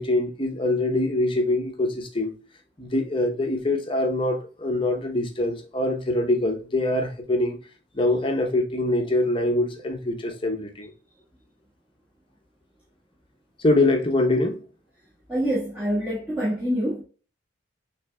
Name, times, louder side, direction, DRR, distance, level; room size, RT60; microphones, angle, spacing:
voice 1, 0.0-2.3 2.8-7.6 7.9-10.9 13.6-14.6, left 2 dB, 25° left, 0.8 m, -24 dB
voice 2, 15.3-17.0, equal, 5° right, 1.4 m, -26 dB
6.4 x 3.3 x 2.2 m
head